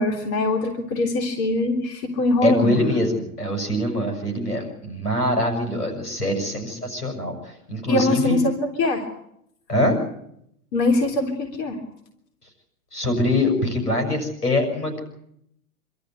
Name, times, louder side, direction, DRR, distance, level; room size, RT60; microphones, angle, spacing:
voice 1, 0.0-2.9 7.9-9.0 10.7-11.8, left 2 dB, 40° left, 4 dB, 3.5 m, -22 dB
voice 2, 2.4-8.4 9.7-10.0 12.9-15.0, left 1 dB, 85° left, 2 dB, 6.7 m, -23 dB
26.0 x 13.0 x 9.3 m, 0.76 s
figure-of-eight pair, 105°, 45 cm